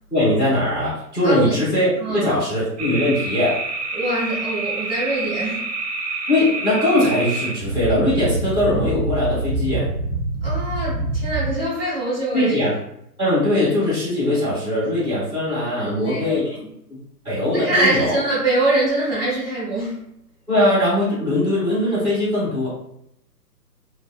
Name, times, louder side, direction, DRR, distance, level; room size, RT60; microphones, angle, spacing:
voice 1, 0.1-1.9 2.1-3.6 6.3-9.9 12.3-12.7 13.2-16.5 16.9-17.0 17.2-18.2 20.5-22.7, left 1 dB, ahead, -21 dB, 1.1 m, -20 dB
voice 2, 1.2-1.5 2.0-2.4 3.9-5.6 10.4-12.5 15.8-16.6 17.5-20.0, right 2 dB, 35° right, -9 dB, 1.4 m, -23 dB
sound 1, 2.8-11.5, right 2 dB, 80° right, 0.7 m, -26 dB
2.9 x 2.0 x 2.4 m, 0.75 s
hypercardioid pair, 180°, 49 cm